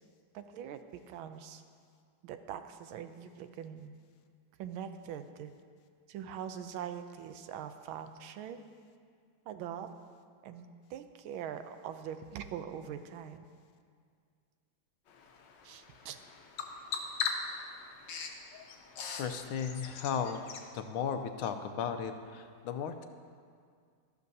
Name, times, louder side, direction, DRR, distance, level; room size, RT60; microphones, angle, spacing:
voice 1, 0.3-1.6 2.2-4.0 4.6-5.5 6.1-8.6 9.5-9.9 10.4-13.4 15.6-16.2, right 9 dB, 80° right, 9 dB, 1.4 m, -43 dB
Bird vocalization bird call bird song, 15.1-20.7, left 5 dB, 65° left, 1.4 m, -41 dB
voice 2, 19.2-20.4 20.7-23.1, left 7 dB, 85° left, 8 dB, 1.5 m, -35 dB
13.0 x 12.0 x 2.7 m, 2.1 s
omnidirectional pair, 2.3 m